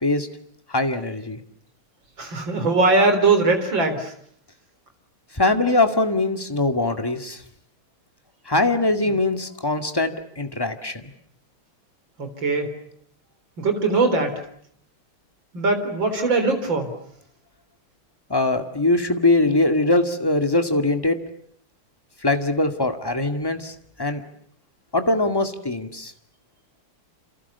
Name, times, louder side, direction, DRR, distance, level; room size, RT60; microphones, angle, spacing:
voice 1, 0.7-1.4 5.3-7.4 8.5-11.1 18.3-21.2 22.2-24.2 24.9-26.1, left 2 dB, 10° left, 6 dB, 2.0 m, -22 dB
voice 2, 2.2-4.1 12.2-12.8 13.6-14.4 15.5-16.9, right 3 dB, 60° right, 7 dB, 4.6 m, -21 dB
29.0 x 27.5 x 7.0 m, 0.66 s
omnidirectional pair, 2.4 m